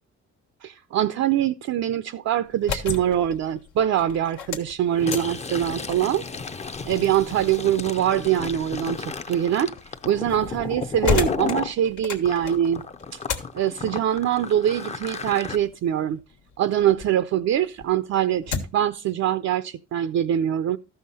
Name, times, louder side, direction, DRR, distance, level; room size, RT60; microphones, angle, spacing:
voice 1, 0.6-6.2 6.9-9.7 10.0-12.8 13.1-13.2 13.5-16.2 16.6-20.8, right 10 dB, 60° right, 0.5 m, -23 dB
sound 1, 2.4-17.2 17.6-18.9, left 5 dB, 80° left, 1.5 m, -35 dB
Fill (with liquid), 4.9-11.7 12.2-15.6, left 5 dB, 20° left, 0.6 m, -33 dB
13.5 x 5.7 x 4.1 m
cardioid pair, 90°, 30 cm